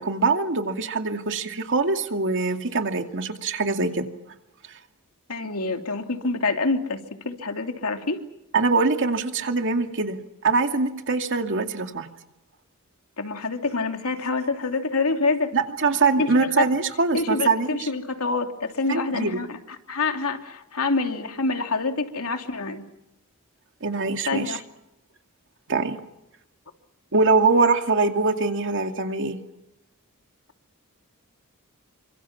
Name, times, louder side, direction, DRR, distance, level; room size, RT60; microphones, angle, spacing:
voice 1, 0.0-4.0 8.5-10.2 10.4-12.1 15.5-17.9 18.9-19.4 23.8-24.6 25.7-26.0 27.1-29.4, right 4 dB, 60° right, 5 dB, 2.5 m, -23 dB
voice 2, 5.3-8.2 13.2-15.5 16.2-16.3 16.6-16.7 17.1-19.6 19.9-22.8 24.3-24.6, left 3 dB, 75° left, 5 dB, 3.0 m, -26 dB
29.5 x 25.5 x 6.0 m, 0.88 s
head